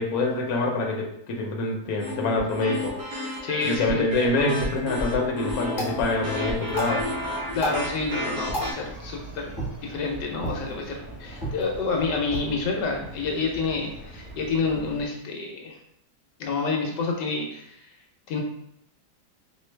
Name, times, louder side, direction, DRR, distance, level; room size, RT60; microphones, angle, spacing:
voice 1, 0.0-2.9 3.6-7.1, left 2 dB, 65° left, 0 dB, 1.1 m, -25 dB
sound 1, 2.0-8.7, left 1 dB, 55° right, 1.4 m, -31 dB
voice 2, 3.4-4.0 7.5-9.5 9.8-15.8 16.4-17.8 18.3-18.4, left 4 dB, 80° left, 1 dB, 1.3 m, -28 dB
sound 2, 5.7-14.7, right 1 dB, 15° left, 1.1 m, -38 dB
sound 3, 5.8-15.1, right 1 dB, 15° right, 0.3 m, -42 dB
4.4 x 2.7 x 3.2 m, 0.76 s
omnidirectional pair, 1.9 m